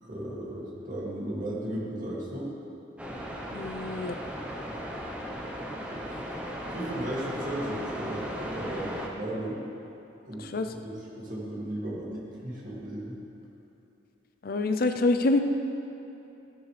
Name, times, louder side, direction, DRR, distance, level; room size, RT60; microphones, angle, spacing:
voice 1, 0.0-2.5 6.1-6.2 6.7-9.6 10.3-13.2, right 1 dB, 45° right, -5 dB, 2.4 m, -35 dB
sound 1, 3.0-9.1, equal, 5° right, 0.9 m, -36 dB
voice 2, 3.5-4.2 10.4-10.7 14.4-15.4, left 2 dB, 50° left, 7 dB, 0.5 m, -26 dB
14.5 x 11.5 x 3.4 m, 2.8 s
head